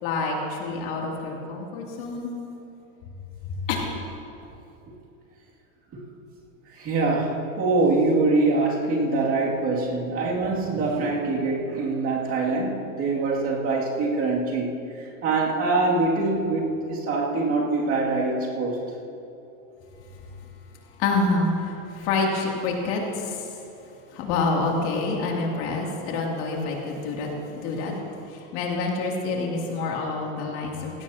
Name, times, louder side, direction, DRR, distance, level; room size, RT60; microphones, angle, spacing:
voice 1, 0.0-2.3 3.4-3.8 21.0-23.5 24.1-27.9 28.3-31.0, left 3 dB, 55° left, -1 dB, 2.8 m, -27 dB
voice 2, 6.7-18.8, right 3 dB, 35° right, -2 dB, 2.4 m, -24 dB
18.5 x 16.5 x 2.8 m, 3.0 s
supercardioid pair, 145°, 40 cm